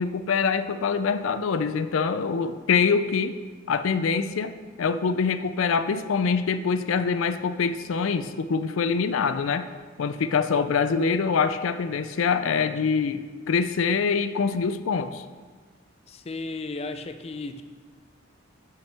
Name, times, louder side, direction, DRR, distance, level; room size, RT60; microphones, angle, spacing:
voice 1, 0.0-3.4 3.7-9.7 10.0-15.2, left 5 dB, 85° left, 11 dB, 0.4 m, -25 dB
voice 2, 16.1-17.6, left 3 dB, 30° left, 8 dB, 0.4 m, -34 dB
12.0 x 5.7 x 3.4 m, 1.5 s
head